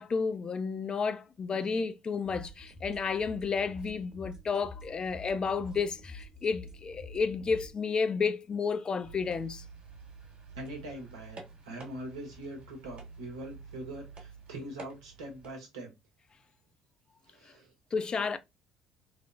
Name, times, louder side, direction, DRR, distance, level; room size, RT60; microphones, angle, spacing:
voice 1, 0.0-9.6 17.9-18.4, left 5 dB, 35° left, 0.4 m, -31 dB
sound 1, 2.3-7.7, left 2 dB, 30° right, 0.9 m, -47 dB
sound 2, 9.0-15.5, right 4 dB, 50° right, 1.1 m, -49 dB
voice 2, 10.5-15.9 17.2-17.7, right 1 dB, 85° right, 0.8 m, -43 dB
3.1 x 2.0 x 2.4 m
hypercardioid pair, 55°, 2 cm